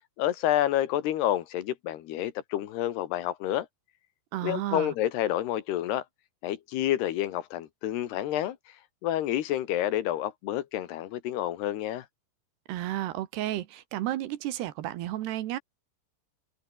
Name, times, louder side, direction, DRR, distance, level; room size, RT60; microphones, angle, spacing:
voice 1, 0.2-3.7 4.4-6.0 6.4-8.6 9.0-12.1, left 12 dB, 75° left, 3.4 m, -29 dB
voice 2, 4.3-5.0 12.7-15.6, right 14 dB, 75° right, 3.3 m, -32 dB
open air
omnidirectional pair, 4.9 m